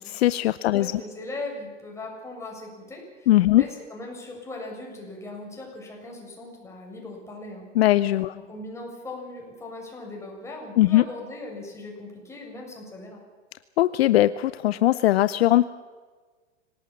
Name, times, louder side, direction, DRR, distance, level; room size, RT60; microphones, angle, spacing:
voice 1, 0.0-1.0 3.3-3.6 7.7-8.3 10.8-11.0 13.8-15.6, left 15 dB, 55° left, 15 dB, 0.8 m, -20 dB
voice 2, 0.7-7.7 8.3-13.2, left 2 dB, 10° left, -1 dB, 7.2 m, -39 dB
26.0 x 18.5 x 7.4 m, 1.4 s
hypercardioid pair, 130°, 36 cm